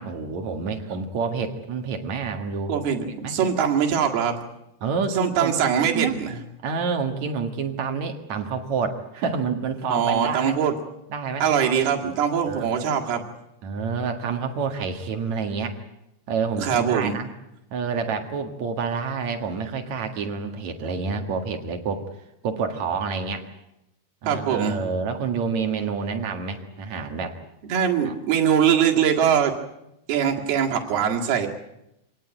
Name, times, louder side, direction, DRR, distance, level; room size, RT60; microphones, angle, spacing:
voice 1, 0.0-2.7 3.2-3.5 4.8-6.1 6.6-10.6 11.1-11.7 12.5-12.8 13.6-15.8 16.3-17.3 17.7-22.0 22.4-23.4 24.2-27.4 28.1-28.2, right 5 dB, 50° right, 5 dB, 2.5 m, -28 dB
voice 2, 2.7-4.4 5.2-6.4 9.9-10.8 11.4-13.2 16.6-17.2 24.3-24.8 27.7-29.5 30.1-31.5, right 8 dB, 70° right, 1 dB, 4.0 m, -22 dB
25.5 x 18.0 x 9.0 m, 0.86 s
omnidirectional pair, 4.9 m